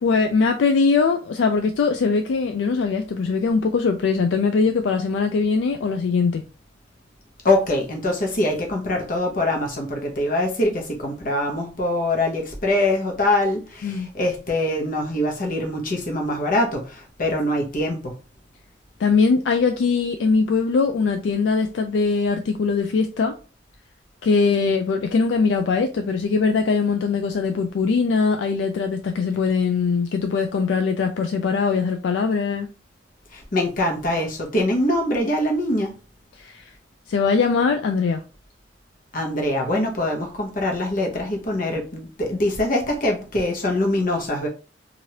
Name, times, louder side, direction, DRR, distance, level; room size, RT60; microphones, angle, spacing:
voice 1, 0.0-6.4 13.8-14.1 19.0-23.4 24.2-32.7 36.4-36.6 37.1-38.2, left 4 dB, 75° left, 0.3 m, -21 dB
voice 2, 7.4-18.1 33.3-35.9 39.1-44.5, left 1 dB, 50° left, 0.9 m, -23 dB
3.1 x 2.5 x 2.8 m
head